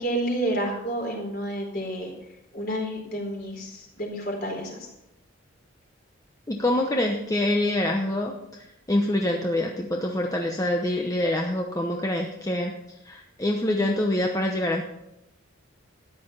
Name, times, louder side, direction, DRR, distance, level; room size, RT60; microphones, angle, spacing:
voice 1, 0.0-2.1 2.5-4.9, right 1 dB, 45° left, 1 dB, 4.3 m, -30 dB
voice 2, 6.5-12.8 13.0-14.8, left 1 dB, 15° left, 2 dB, 0.9 m, -25 dB
13.5 x 10.0 x 5.6 m, 0.88 s
head